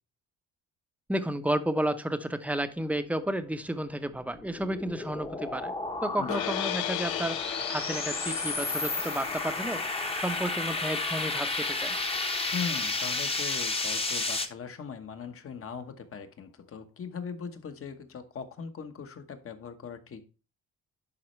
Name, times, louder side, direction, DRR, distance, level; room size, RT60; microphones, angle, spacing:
voice 1, 1.1-9.9 10.2-12.0, right 1 dB, 5° right, 0.7 m, -32 dB
sound 1, 3.9-14.5, left 3 dB, 20° left, 1.0 m, -32 dB
sound 2, 6.3-12.4, left 13 dB, 80° left, 0.5 m, -37 dB
voice 2, 12.5-20.2, left 6 dB, 45° left, 1.2 m, -40 dB
11.0 x 4.2 x 3.1 m
cardioid pair, 90°, 30 cm